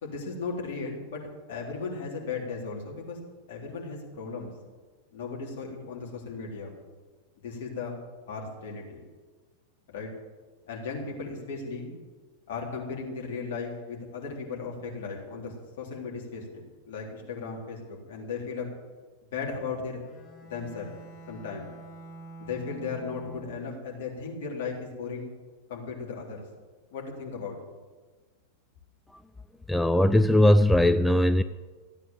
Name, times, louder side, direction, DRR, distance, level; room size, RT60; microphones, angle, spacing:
voice 1, 0.0-1.2 1.5-3.2 3.5-4.5 5.1-6.7 7.4-8.0 8.3-9.0 9.9-10.1 10.7-11.9 12.5-18.7 19.2-20.0 20.5-20.9 21.3-21.7 22.4-25.3 25.7-26.4 26.9-27.6, left 4 dB, 55° left, -2 dB, 3.7 m, -36 dB
Bowed string instrument, 20.0-23.8, right 3 dB, 20° left, 4.3 m, -47 dB
voice 2, 29.7-31.4, left 1 dB, 5° left, 10 dB, 0.4 m, -20 dB
14.5 x 9.0 x 7.9 m, 1.3 s
figure-of-eight pair, 90°, 0 cm